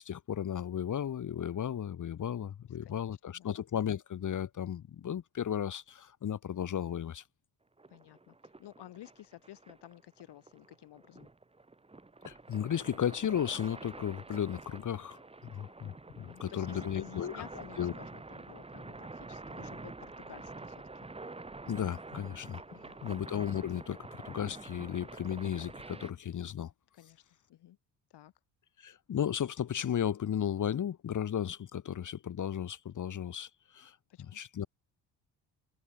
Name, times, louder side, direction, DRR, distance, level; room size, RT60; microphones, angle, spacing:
voice 1, 0.0-7.2 12.2-17.4 17.8-17.9 21.7-22.6 23.0-26.7 28.8-34.7, left 9 dB, 45° left, 1.3 m, -35 dB
voice 2, 2.6-3.5 7.9-11.3 16.3-21.1 22.7-23.1 26.9-27.2 27.5-27.8 28.1-28.3 34.1-34.4, left 13 dB, 75° left, 6.6 m, -53 dB
sound 1, 7.8-26.1, right 3 dB, 15° right, 1.3 m, -47 dB
supercardioid pair, 75°, 41 cm